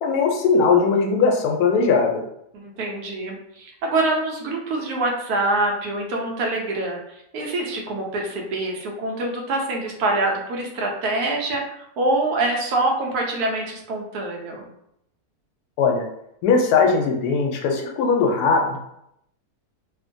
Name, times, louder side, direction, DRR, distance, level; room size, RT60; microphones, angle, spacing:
voice 1, 0.0-2.2 15.8-16.0 16.4-18.8, left 4 dB, 85° left, 1 dB, 1.1 m, -19 dB
voice 2, 2.5-7.0 7.3-14.7, right 2 dB, 80° right, 0 dB, 1.1 m, -25 dB
2.9 x 2.1 x 2.5 m, 0.77 s
omnidirectional pair, 1.6 m